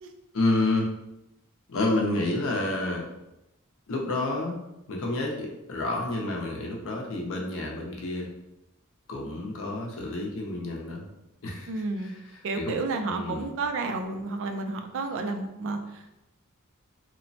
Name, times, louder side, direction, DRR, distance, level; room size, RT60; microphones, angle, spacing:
voice 1, 0.3-0.9 1.7-3.1 3.9-4.6 4.9-8.3 9.1-11.1 11.4-12.8 13.0-13.4, left 2 dB, 65° left, -1 dB, 0.5 m, -29 dB
voice 2, 11.7-12.1 12.4-16.1, right 3 dB, 60° right, 6 dB, 0.3 m, -31 dB
3.0 x 2.0 x 2.6 m, 0.89 s
head